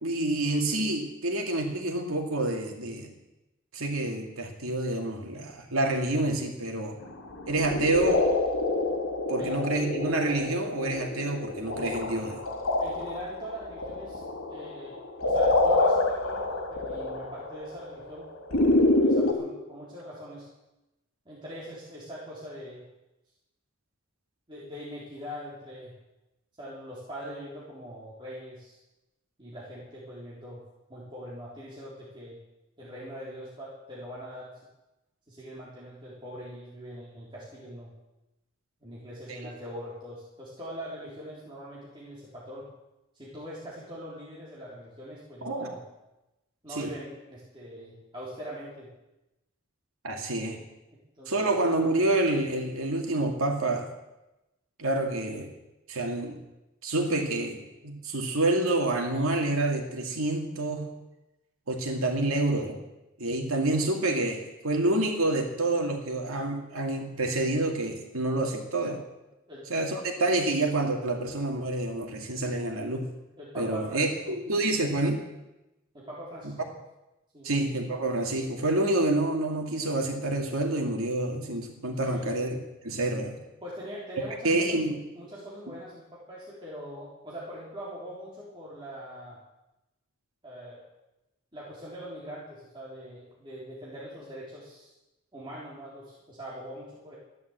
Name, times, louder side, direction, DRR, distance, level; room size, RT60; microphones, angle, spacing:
voice 1, 0.0-3.1 3.7-7.0 7.5-8.2 9.3-12.4 39.3-39.4 45.4-45.7 46.8-46.9 50.0-50.6 51.3-53.9 54.8-55.5 55.9-56.4 56.8-60.9 61.7-62.8 63.2-69.0 69.7-73.1 73.6-75.2 77.4-82.6 82.8-83.4 84.4-85.0, right 2 dB, 85° right, 2 dB, 2.4 m, -28 dB
sound 1, 7.3-19.3, left 2 dB, 80° left, 2.5 m, -27 dB
voice 2, 12.8-14.2 14.5-20.5 21.3-22.9 24.5-25.9 26.6-28.8 29.4-30.6 30.9-32.4 32.8-34.5 35.3-37.9 38.8-42.7 43.1-45.8 46.6-48.9 50.1-50.2 51.2-51.5 69.5-69.7 73.4-74.4 75.9-76.7 77.3-77.5 82.1-82.3 83.6-84.8 85.1-89.4 90.4-90.8 91.5-94.9 95.3-97.2, equal, 25° right, -7 dB, 3.9 m, -42 dB
14.5 x 11.0 x 8.1 m, 0.97 s
head